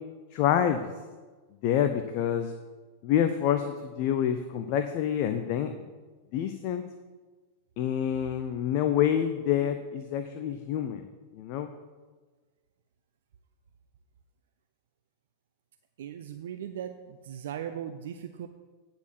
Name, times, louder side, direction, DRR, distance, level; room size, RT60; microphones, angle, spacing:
voice 1, 0.3-0.9 1.6-2.5 3.0-5.8 6.3-6.8 7.8-11.1 11.3-11.7, left 9 dB, 45° left, 8 dB, 0.6 m, -27 dB
voice 2, 16.0-18.5, right 9 dB, 60° right, 7 dB, 0.5 m, -38 dB
9.6 x 4.4 x 7.6 m, 1.4 s
figure-of-eight pair, 90°, 0 cm